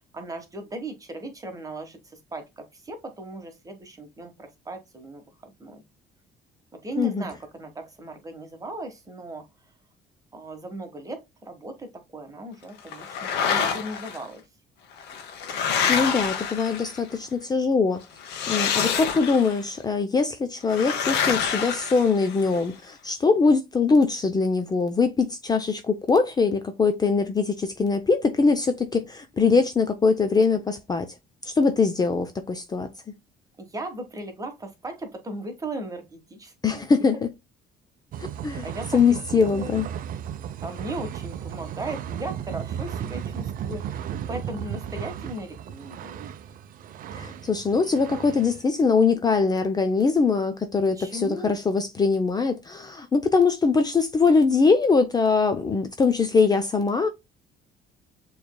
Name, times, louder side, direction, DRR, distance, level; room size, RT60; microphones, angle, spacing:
voice 1, 0.1-5.8 6.7-9.4 10.3-14.4 33.6-36.9 38.6-39.8 40.6-46.2 51.0-51.5, right 2 dB, 20° right, 1.3 m, -37 dB
sound 1, 12.9-14.2 15.0-17.1 18.2-19.6 20.7-22.6, left 7 dB, 80° left, 1.1 m, -27 dB
voice 2, 15.9-18.0 18.5-31.1 31.4-32.9 36.6-37.3 38.2-38.7 38.9-39.9 47.1-57.1, left 4 dB, 25° left, 0.6 m, -22 dB
sound 2, 38.1-48.6, right 9 dB, 55° right, 0.5 m, -35 dB
6.8 x 3.2 x 2.2 m
cardioid pair, 110°, 17 cm